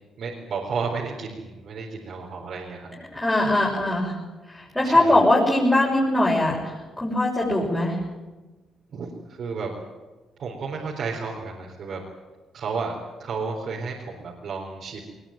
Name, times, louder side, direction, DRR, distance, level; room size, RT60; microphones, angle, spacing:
voice 1, 0.2-3.0 4.8-5.2 8.9-9.7 10.4-12.0 12.5-15.0, right 4 dB, 60° right, -2 dB, 4.2 m, -32 dB
voice 2, 3.1-4.2 4.5-8.0, left 1 dB, 10° left, -5 dB, 6.7 m, -21 dB
20.5 x 20.5 x 9.2 m, 1.2 s
cardioid pair, 90°, 0 cm